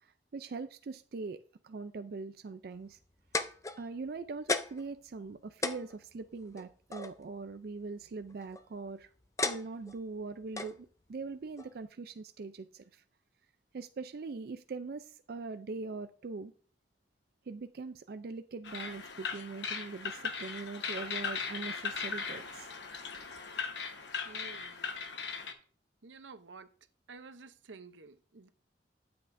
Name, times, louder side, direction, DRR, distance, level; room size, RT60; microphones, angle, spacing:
voice 1, 0.0-3.0 3.8-9.1 9.4-13.0 13.7-16.5 17.5-22.7 23.4-23.5, right 4 dB, 55° right, 0.4 m, -42 dB
sound 1, 3.0-4.1 4.5-4.9 5.3-5.4 5.6-7.1 8.2-8.6 9.4-10.0 10.6-10.8 11.6-11.7, left 3 dB, 15° left, 0.5 m, -34 dB
sound 2, 18.6-25.5, left 5 dB, 75° left, 1.1 m, -38 dB
voice 2, 24.3-24.9 26.0-26.7 27.1-28.5, right 4 dB, 90° right, 0.7 m, -51 dB
12.5 x 7.8 x 2.6 m
head